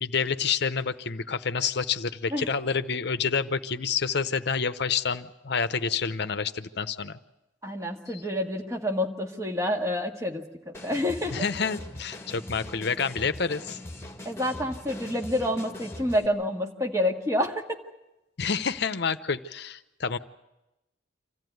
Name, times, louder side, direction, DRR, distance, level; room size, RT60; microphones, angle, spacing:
voice 1, 0.0-7.2 11.3-13.8 18.4-20.2, left 6 dB, 60° left, 12 dB, 0.8 m, -28 dB
voice 2, 7.6-11.4 14.3-17.6, left 1 dB, 15° right, 2 dB, 1.8 m, -28 dB
sound 1, 10.7-16.3, left 1 dB, 15° left, 2.0 m, -41 dB
26.0 x 14.5 x 9.4 m, 0.97 s
head